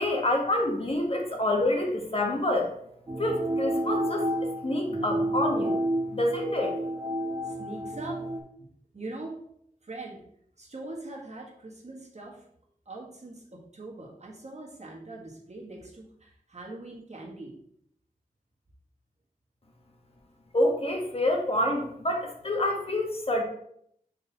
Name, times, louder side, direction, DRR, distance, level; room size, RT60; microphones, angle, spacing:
voice 1, 0.0-2.7 3.2-4.3 4.6-5.8 6.1-6.7 20.5-23.4, left 1 dB, 40° left, 1 dB, 1.2 m, -27 dB
sound 1, 3.1-8.4, right 1 dB, 25° right, 0.7 m, -30 dB
voice 2, 7.4-8.2 8.6-8.7 8.9-9.4 9.8-10.2 10.6-12.4 12.9-17.5, right 2 dB, 50° right, -2 dB, 1.5 m, -42 dB
5.2 x 4.3 x 4.1 m, 0.70 s
wide cardioid pair, 70°, 15 cm